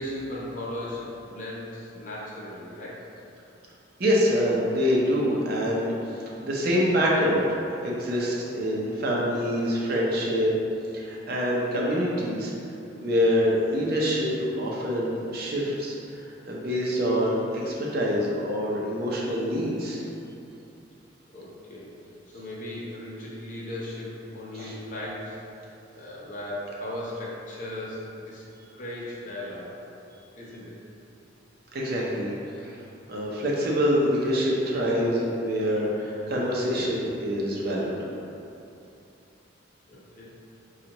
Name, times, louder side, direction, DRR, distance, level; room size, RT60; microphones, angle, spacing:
voice 1, 0.0-3.1 21.3-21.9 22.3-25.4 26.0-28.4 28.7-29.8 30.4-30.8 39.9-40.4, left 1 dB, 40° left, -5 dB, 0.8 m, -37 dB
voice 2, 4.0-5.9 6.4-10.5 10.9-12.5 13.0-16.0 16.2-20.0 24.5-24.7 31.7-32.3 32.6-32.7 33.1-37.9, equal, 55° right, -4 dB, 0.7 m, -25 dB
6.2 x 2.4 x 2.9 m, 2.7 s
head